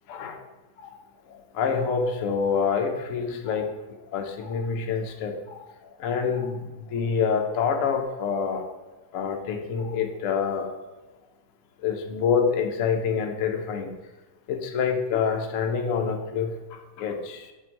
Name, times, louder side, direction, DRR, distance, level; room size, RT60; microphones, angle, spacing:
voice 1, 0.1-0.4 0.8-0.9 1.5-3.7 4.1-5.6 6.0-6.6 6.9-8.6 9.1-10.7 11.8-13.9 14.5-16.5 17.0-17.4, left 6 dB, 70° left, 3 dB, 0.7 m, -26 dB
6.4 x 4.4 x 4.5 m, 1.2 s
omnidirectional pair, 2.3 m